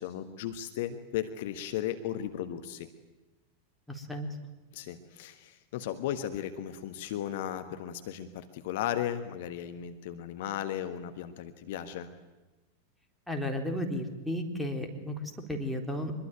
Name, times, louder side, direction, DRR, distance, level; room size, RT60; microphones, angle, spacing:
voice 1, 0.0-2.9 4.7-12.1, left 11 dB, 50° left, 9 dB, 1.4 m, -36 dB
voice 2, 3.9-4.3 13.3-16.1, left 1 dB, ahead, 4 dB, 3.9 m, -34 dB
24.5 x 22.0 x 9.3 m, 1.1 s
figure-of-eight pair, 90°, 0 cm